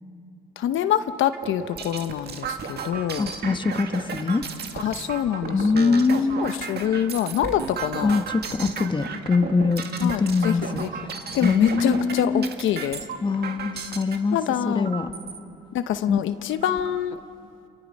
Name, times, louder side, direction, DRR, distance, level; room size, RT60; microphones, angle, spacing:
voice 1, 0.6-3.3 4.7-6.0 6.4-8.2 10.0-10.9 11.3-13.0 14.3-14.9 15.7-17.2, left 10 dB, 80° left, 10 dB, 0.9 m, -25 dB
sound 1, 1.3-14.2 14.8-15.4 15.9-16.0 16.3-17.0, right 6 dB, 55° right, 1.9 m, -34 dB
voice 2, 3.2-4.4 5.5-6.5 8.0-10.8 11.4-12.5 13.2-14.4 14.7-15.1 16.1-16.2, left 4 dB, 25° left, 8 dB, 1.3 m, -23 dB
29.0 x 28.0 x 5.4 m, 2.6 s
cardioid pair, 90°, 20 cm